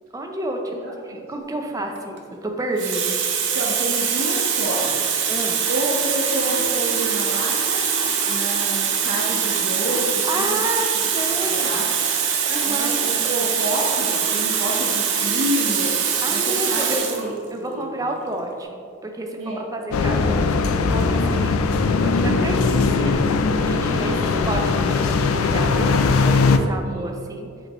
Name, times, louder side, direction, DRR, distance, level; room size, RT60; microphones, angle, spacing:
voice 1, 0.1-0.8 1.0-3.2 5.3-5.7 10.3-10.9 11.1-11.7 12.5-13.1 16.2-17.1 17.5-23.3 23.7-24.2 24.5-26.1 26.5-27.5, right 1 dB, 15° right, 2 dB, 0.6 m, -30 dB
voice 2, 0.7-1.3 3.5-5.2 5.7-10.5 11.5-12.1 12.7-15.9 16.3-17.9 19.4-19.6 22.3-22.5 23.9-24.3 26.8-27.2, right 1 dB, 85° right, -5 dB, 1.1 m, -29 dB
Water tap faucet, 2.0-2.2 2.8-17.3 18.2-18.3, right 7 dB, 60° right, 0.7 m, -23 dB
sound 1, 19.9-26.6, left 4 dB, 75° left, 0.4 m, -20 dB
7.6 x 4.5 x 3.0 m, 2.3 s
head